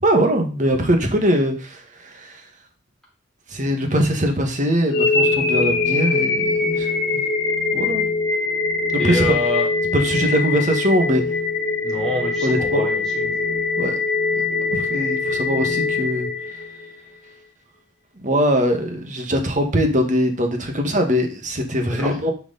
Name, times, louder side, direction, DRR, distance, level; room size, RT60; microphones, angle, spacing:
voice 1, 0.0-2.4 3.5-7.2 7.7-8.1 8.9-9.2 9.9-11.2 12.4-12.9 13.8-14.0 14.3-14.4 14.7-16.3 18.2-22.3, equal, 40° right, 4 dB, 1.6 m, -21 dB
sound 1, 4.9-16.9, left 4 dB, 55° left, 1.7 m, -22 dB
voice 2, 9.0-9.7 11.8-13.3 22.0-22.1, left 1 dB, ahead, -5 dB, 3.4 m, -26 dB
10.0 x 4.9 x 4.0 m, 0.35 s
head